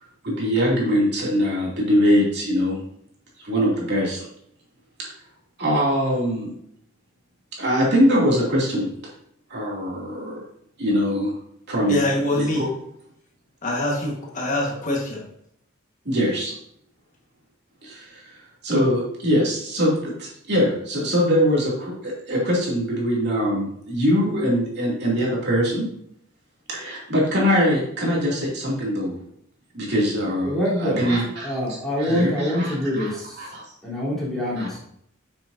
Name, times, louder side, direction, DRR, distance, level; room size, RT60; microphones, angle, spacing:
voice 1, 0.2-2.8 3.4-4.2 5.0-5.1 5.6-6.5 7.6-8.9 9.5-10.4 10.8-11.3 11.7-12.7 16.0-16.5 17.8-18.4 18.6-25.8 26.7-29.2 29.7-30.5 30.8-31.5 32.0-33.1 33.4-33.6 34.6-34.7, equal, 55° right, -4 dB, 2.6 m, -22 dB
voice 2, 11.9-12.6 13.6-15.2, left 1 dB, 40° left, -1 dB, 1.4 m, -24 dB
voice 3, 30.4-31.1 31.4-33.5 33.8-34.8, equal, ahead, -8 dB, 3.3 m, -25 dB
9.2 x 6.2 x 2.7 m, 0.71 s
head